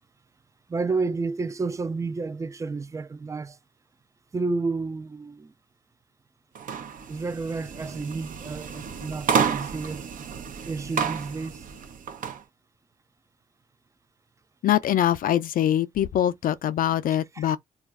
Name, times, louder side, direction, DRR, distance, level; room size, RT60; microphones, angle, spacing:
voice 1, 0.7-3.6 4.3-5.5 7.1-10.1 10.7-11.6 17.4-17.5, right 4 dB, 20° right, 0.3 m, -30 dB
sound 1, 6.6-12.4, right 6 dB, 65° right, 0.6 m, -30 dB
voice 2, 14.6-17.6, left 11 dB, 70° left, 0.4 m, -23 dB
2.3 x 2.2 x 3.5 m
cardioid pair, 65°, 15 cm